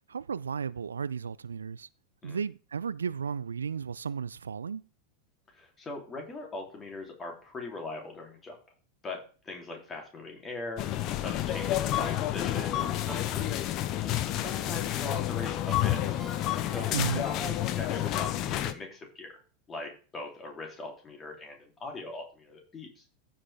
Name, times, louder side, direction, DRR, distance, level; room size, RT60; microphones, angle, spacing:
voice 1, 0.1-1.9 2.2-4.8 16.9-17.3, right 6 dB, 75° right, 0.3 m, -34 dB
voice 2, 5.5-8.6 9.0-13.6 14.0-19.4 19.7-23.0, left 2 dB, 20° left, 2.8 m, -41 dB
sound 1, 10.8-18.7, left 13 dB, 40° left, 0.8 m, -30 dB
Ringtone, 11.5-13.7 14.1-14.2 15.7-17.9 18.3-18.4, right 3 dB, 5° right, 1.3 m, -48 dB
14.5 x 5.4 x 3.3 m
figure-of-eight pair, 90°, 0 cm